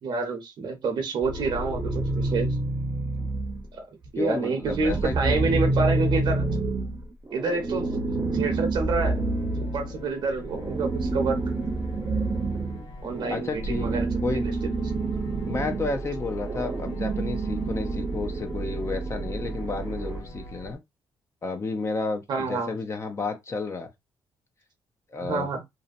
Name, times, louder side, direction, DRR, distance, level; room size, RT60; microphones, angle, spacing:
voice 1, 0.0-2.5 4.1-6.5 7.3-9.2 9.6-11.4 13.0-14.2 22.3-22.7 25.2-25.6, right 4 dB, 65° right, 0.8 m, -28 dB
sound 1, 1.2-3.7 4.0-20.2, right 2 dB, 30° right, 0.7 m, -28 dB
voice 2, 4.2-5.5 13.3-13.9 14.2-14.6 15.5-20.8 21.4-23.9 25.1-25.5, left 3 dB, 35° left, 0.5 m, -31 dB
sound 2, 8.9-20.8, left 2 dB, 90° left, 0.7 m, -43 dB
2.7 x 2.0 x 2.5 m
cardioid pair, 90°, 8 cm